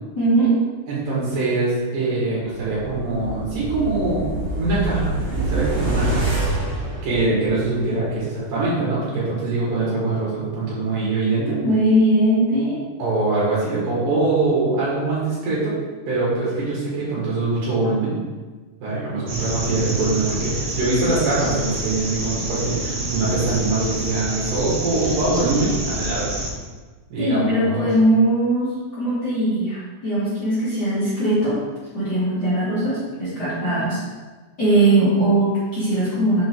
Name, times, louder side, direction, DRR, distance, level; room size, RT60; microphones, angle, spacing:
voice 1, 0.2-0.5 11.6-12.8 27.2-31.6 31.9-34.0 34.6-36.4, right 1 dB, 35° left, -12 dB, 2.5 m, -20 dB
voice 2, 0.9-4.3 4.6-6.3 7.0-11.6 13.0-15.8 16.1-18.2 18.8-26.4 27.1-27.9, right 3 dB, 80° right, -7 dB, 3.6 m, -23 dB
sound 1, 2.8-7.8 8.1-8.2, right 2 dB, 35° right, 1.1 m, -26 dB
sound 2, 19.3-26.5, right 1 dB, 60° right, 1.7 m, -28 dB
6.8 x 5.2 x 3.9 m, 1.3 s
omnidirectional pair, 3.9 m